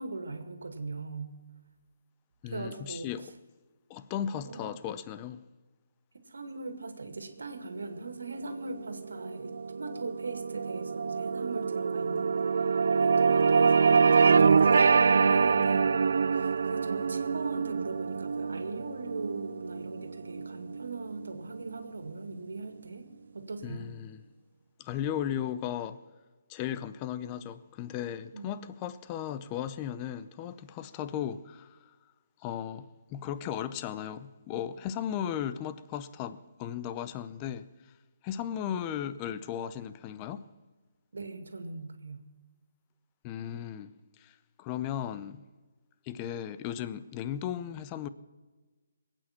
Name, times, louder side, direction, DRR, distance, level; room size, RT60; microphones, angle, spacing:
voice 1, 0.0-1.3 2.4-3.1 4.4-4.8 6.3-15.9 16.3-23.1 23.3-23.9 28.3-28.7 41.1-42.2, right 3 dB, 85° right, 2.1 m, -40 dB
voice 2, 2.4-3.3 3.9-5.4 23.6-24.2 24.8-26.0 26.5-31.8 32.4-37.7 38.2-40.4 43.2-44.3 44.6-45.4 46.1-48.1, left 10 dB, 20° left, 0.6 m, -36 dB
sound 1, 8.6-21.2, right 5 dB, 65° right, 0.4 m, -25 dB
21.5 x 8.9 x 5.8 m
hypercardioid pair, 160°, 0 cm